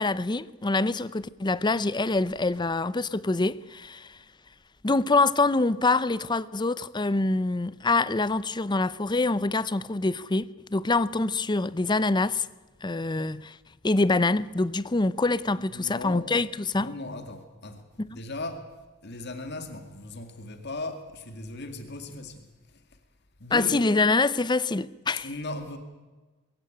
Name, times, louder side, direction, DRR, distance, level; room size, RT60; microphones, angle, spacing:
voice 1, 0.0-4.2 4.8-12.5 12.8-13.6 13.8-16.9 18.0-18.2 23.5-25.3, left 3 dB, 20° left, 0.6 m, -25 dB
voice 2, 15.5-16.3 16.7-17.8 18.1-18.6 19.0-22.5 23.4-23.9 25.2-25.8, left 2 dB, 55° left, 2.1 m, -37 dB
22.0 x 16.0 x 9.1 m
head